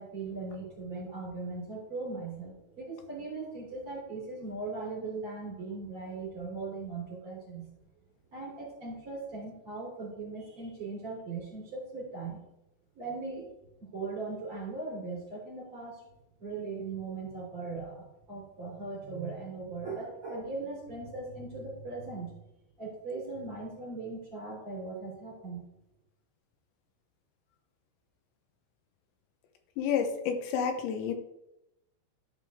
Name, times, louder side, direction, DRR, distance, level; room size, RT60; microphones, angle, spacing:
voice 1, 0.0-7.7 8.3-12.4 12.9-13.5 13.8-16.1 16.4-22.4 22.8-25.6, right 3 dB, 30° right, -4 dB, 4.1 m, -39 dB
voice 2, 29.8-31.1, left 7 dB, 85° left, 5 dB, 3.3 m, -30 dB
13.5 x 5.2 x 3.6 m, 0.88 s
omnidirectional pair, 5.1 m